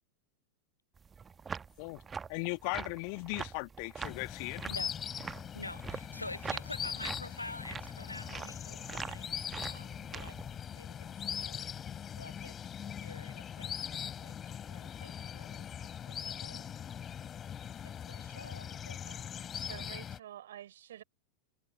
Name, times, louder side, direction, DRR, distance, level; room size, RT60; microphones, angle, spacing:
sound 1, 1.0-10.6, right 6 dB, 15° right, 1.2 m, -44 dB
voice 1, 2.3-4.6, left 40 dB or more, 45° left, 1.7 m, -37 dB
sound 2, 4.0-20.2, left 8 dB, 25° left, 4.1 m, -41 dB
voice 2, 4.6-4.9 5.5-10.4 10.7-11.1 11.4-11.6 12.2-12.5 13.0-14.3 14.7-16.7 17.8-19.3, left 2 dB, 85° left, 1.2 m, -47 dB
voice 3, 19.5-21.0, right 11 dB, 60° right, 5.2 m, -48 dB
figure-of-eight pair, 90°, 0 cm